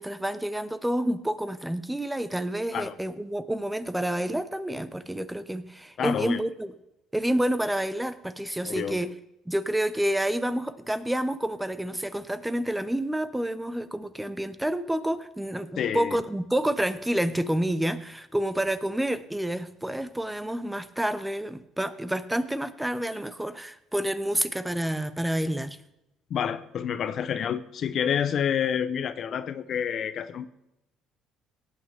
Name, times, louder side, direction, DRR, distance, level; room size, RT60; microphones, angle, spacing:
voice 1, 0.0-6.7 7.1-9.1 9.5-25.8, right 1 dB, 5° right, 13 dB, 0.8 m, -29 dB
voice 2, 6.0-6.4 8.6-9.1 15.8-16.2 26.3-30.5, left 8 dB, 55° left, 13 dB, 0.7 m, -28 dB
17.5 x 8.7 x 3.5 m, 0.88 s
supercardioid pair, 85°, 0 cm